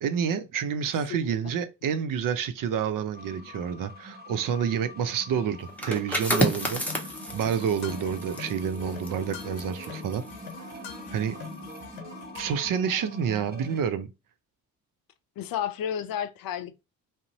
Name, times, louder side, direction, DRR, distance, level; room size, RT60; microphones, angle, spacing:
voice 1, 0.0-10.2 11.1-11.4 12.3-14.1, right 7 dB, 45° right, 0.5 m, -29 dB
sound 1, 3.1-13.8, equal, 20° right, 0.8 m, -44 dB
sound 2, 5.7-11.2 11.5-11.8, equal, 5° left, 0.8 m, -31 dB
sound 3, 6.7-12.7, left 5 dB, 85° left, 0.7 m, -43 dB
voice 2, 15.4-16.8, left 9 dB, 50° left, 0.5 m, -32 dB
2.5 x 2.0 x 2.7 m
hypercardioid pair, 45°, 45 cm